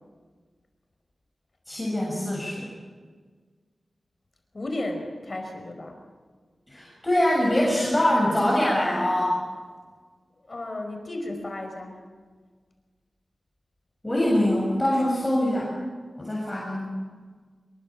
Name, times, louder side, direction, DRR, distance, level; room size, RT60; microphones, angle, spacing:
voice 1, 1.7-2.7 6.7-9.4 14.0-15.7 16.2-17.0, left 1 dB, 15° left, -4 dB, 7.3 m, -23 dB
voice 2, 4.5-6.0 10.5-11.9, left 1 dB, 40° left, 4 dB, 5.1 m, -33 dB
25.0 x 23.0 x 7.5 m, 1.5 s
wide cardioid pair, 85°, 0 cm